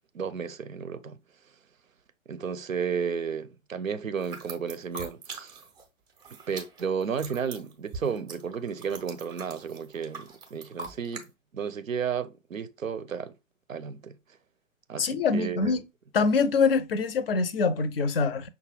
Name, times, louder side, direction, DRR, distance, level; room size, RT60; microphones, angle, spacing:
voice 1, 0.1-1.2 2.3-5.6 6.5-11.3 11.5-13.3 13.7-14.2 14.9-15.7, right 6 dB, 90° right, 0.5 m, -33 dB
sound 1, 4.2-5.8 6.1-11.3, right 4 dB, 15° right, 0.4 m, -42 dB
voice 2, 15.0-15.8 16.1-18.5, left 4 dB, 50° left, 0.5 m, -24 dB
5.8 x 2.2 x 3.2 m
figure-of-eight pair, 115°, 39 cm